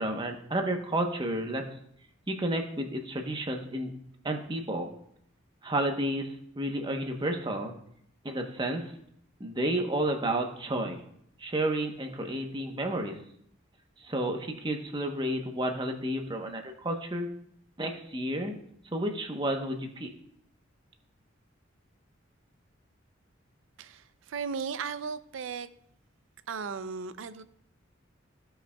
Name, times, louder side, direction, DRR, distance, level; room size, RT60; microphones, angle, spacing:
voice 1, 0.0-1.6 2.3-3.9 4.2-4.9 5.6-6.3 6.6-7.7 8.2-8.8 9.4-11.0 11.4-13.1 14.0-17.3 17.8-18.5 18.9-20.1, right 1 dB, 25° right, 4 dB, 0.9 m, -31 dB
voice 2, 23.8-25.7 26.5-27.4, right 5 dB, 75° right, 13 dB, 0.5 m, -36 dB
15.5 x 5.6 x 2.2 m, 0.70 s
head